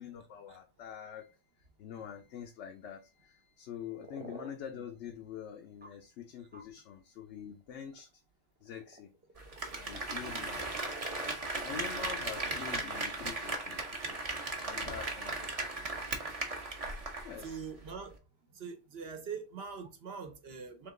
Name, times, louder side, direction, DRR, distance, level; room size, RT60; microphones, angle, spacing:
voice 1, 0.0-1.4 1.8-8.1 8.6-9.1 9.8-10.9 11.6-14.2 14.6-15.3 17.2-17.6, left 8 dB, 75° left, 0.9 m, -45 dB
sound 1, 3.8-4.5 5.8-5.9 6.5-6.7 7.5-8.0 8.6-9.9 10.5-11.4 12.2-12.3, right 1 dB, 15° right, 0.3 m, -49 dB
Applause, 9.4-17.6 17.9-18.0, right 2 dB, 35° right, 0.8 m, -37 dB
voice 2, 17.4-18.2 18.5-20.9, right 6 dB, 60° right, 1.0 m, -43 dB
3.7 x 2.9 x 3.6 m
omnidirectional pair, 1.2 m